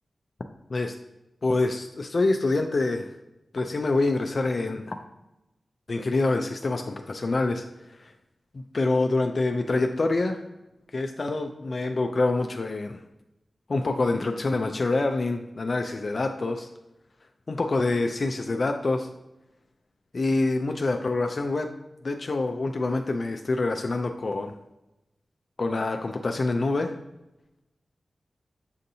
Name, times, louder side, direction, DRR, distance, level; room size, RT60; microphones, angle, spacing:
voice 1, 1.4-3.1 3.5-4.9 5.9-7.6 8.0-8.1 8.7-10.4 10.9-13.0 13.7-16.7 17.5-19.1 20.1-21.7 22.0-24.5 25.6-26.9, left 2 dB, 60° left, 4 dB, 0.3 m, -26 dB
6.3 x 2.6 x 2.7 m, 0.94 s
cardioid pair, 45°, 0 cm